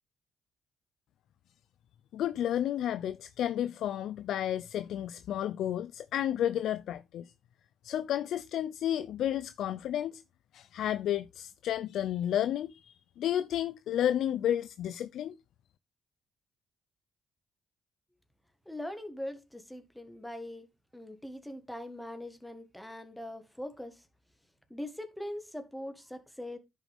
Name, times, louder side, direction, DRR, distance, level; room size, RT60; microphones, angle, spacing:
voice 1, 2.1-7.3 7.8-10.2 10.5-15.3, left 11 dB, 75° left, 0.5 m, -32 dB
voice 2, 18.6-20.7 20.9-24.0 24.7-26.6, left 1 dB, 5° left, 1.6 m, -41 dB
10.5 x 6.2 x 3.5 m
cardioid pair, 90°, 0 cm